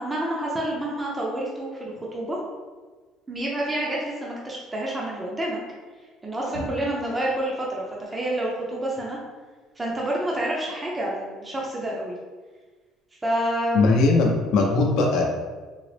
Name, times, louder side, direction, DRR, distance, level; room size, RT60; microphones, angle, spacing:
voice 1, 0.0-2.4 3.3-5.6 6.2-9.2 9.8-12.2 13.2-13.9, right 1 dB, 15° right, -4 dB, 0.5 m, -28 dB
voice 2, 13.7-15.2, left 3 dB, 65° left, 0 dB, 0.6 m, -19 dB
3.8 x 2.1 x 3.2 m, 1.4 s
cardioid pair, 150°, 0 cm